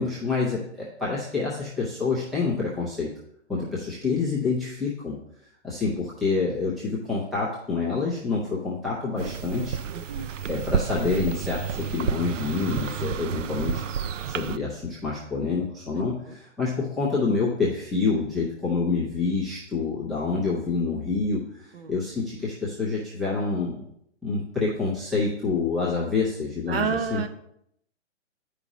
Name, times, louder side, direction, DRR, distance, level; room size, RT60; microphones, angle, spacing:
voice 1, 0.0-3.1 3.5-5.1 5.6-9.8 10.1-13.8 14.3-23.8 24.2-27.2, left 4 dB, ahead, -8 dB, 0.5 m, -27 dB
sound 1, 9.2-14.6, right 7 dB, 90° right, 0.5 m, -30 dB
voice 2, 26.7-27.3, right 6 dB, 55° right, 8 dB, 0.9 m, -29 dB
9.5 x 5.0 x 4.0 m, 0.73 s
hypercardioid pair, 155°, 36 cm